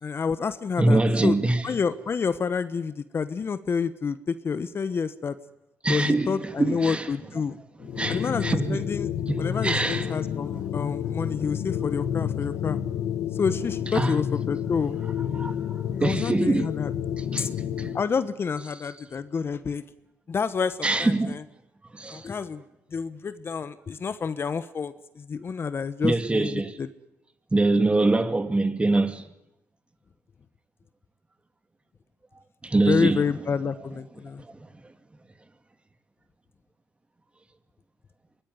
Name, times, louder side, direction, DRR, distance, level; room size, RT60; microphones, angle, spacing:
voice 1, 0.0-1.4 1.6-5.4 5.9-7.6 8.1-9.1 9.4-12.8 13.3-15.0 16.0-16.9 17.4-17.5 17.9-19.8 20.3-21.4 22.1-22.6 22.9-26.9 32.9-34.4, left 5 dB, 45° left, 1.3 m, -29 dB
voice 2, 0.8-1.6 5.8-7.1 8.0-8.8 9.3-10.2 13.9-14.1 15.3-16.7 17.2-18.0 20.8-21.4 21.9-22.3 26.0-26.8 27.5-29.2 32.6-33.2, right 2 dB, 20° right, 2.4 m, -24 dB
sound 1, 7.8-18.1, left 9 dB, 75° left, 1.4 m, -30 dB
24.0 x 20.0 x 9.6 m
cardioid pair, 75°, 6 cm